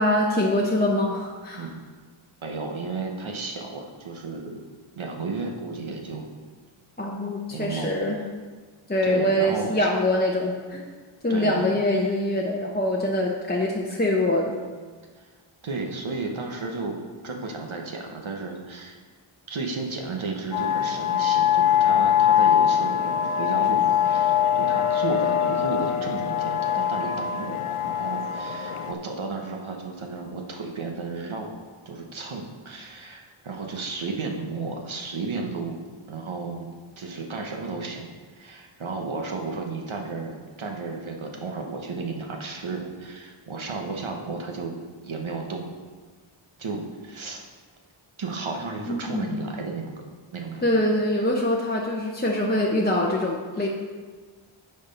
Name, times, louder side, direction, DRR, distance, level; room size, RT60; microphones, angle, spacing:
voice 1, 0.0-1.7 7.0-8.2 8.9-10.8 11.2-14.6 48.9-49.4 50.6-53.7, left 1 dB, 20° left, -2 dB, 0.8 m, -24 dB
voice 2, 2.4-4.6 5.0-6.3 7.5-8.0 9.0-9.9 11.3-11.6 15.2-15.3 15.6-17.0 17.2-19.0 19.5-31.5 31.9-35.8 36.1-38.1 38.3-44.7 45.0-45.6 46.6-47.4 48.2-49.9 50.3-50.6 53.6-53.7, right 3 dB, 70° right, 2 dB, 1.0 m, -33 dB
sound 1, 20.5-28.9, left 9 dB, 85° left, 0.6 m, -23 dB
8.3 x 4.5 x 5.3 m, 1.5 s
wide cardioid pair, 65°, 49 cm